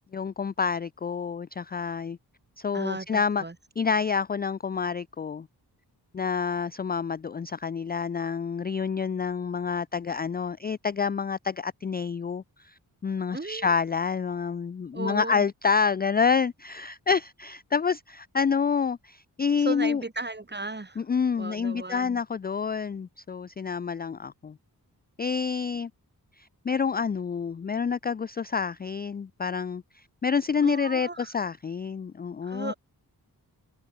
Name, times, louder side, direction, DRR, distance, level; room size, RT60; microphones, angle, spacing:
voice 1, 0.1-2.2 2.6-3.4 3.8-5.5 6.1-12.7 13.0-20.0 21.0-24.5 25.2-25.9 26.4-32.7, left 6 dB, 25° left, 0.4 m, -28 dB
voice 2, 2.7-3.6 13.3-13.7 14.9-15.5 19.6-21.0 21.4-22.2 30.6-31.3 32.4-32.7, right 2 dB, 25° right, 5.3 m, -35 dB
wide cardioid pair, 90°, 39 cm